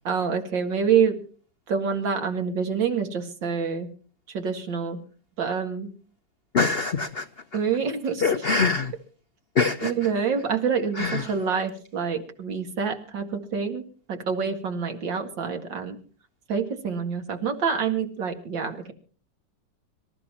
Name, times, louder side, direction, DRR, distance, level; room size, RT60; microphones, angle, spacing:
voice 1, 0.0-1.2 1.7-3.9 4.3-5.0 5.4-5.9 7.5-8.2 9.8-13.8 14.1-16.0 16.5-18.9, right 6 dB, 70° right, 2.7 m, -26 dB
voice 2, 6.5-7.3 8.2-8.9 9.6-9.9 11.0-11.3, left 4 dB, 60° left, 0.6 m, -23 dB
25.5 x 13.5 x 3.0 m
omnidirectional pair, 2.1 m